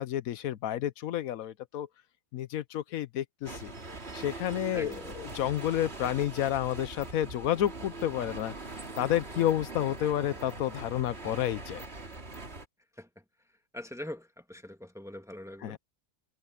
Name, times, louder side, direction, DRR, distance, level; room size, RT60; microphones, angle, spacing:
voice 1, 0.0-1.9 2.3-3.7 4.1-8.5 9.0-11.8 15.6-15.8, left 12 dB, 80° left, 1.1 m, -30 dB
sound 1, 3.4-12.6, right 3 dB, 45° right, 2.9 m, -42 dB
voice 2, 4.7-5.2 13.0-13.1 13.7-15.8, left 1 dB, ahead, 1.7 m, -42 dB
omnidirectional pair, 1.5 m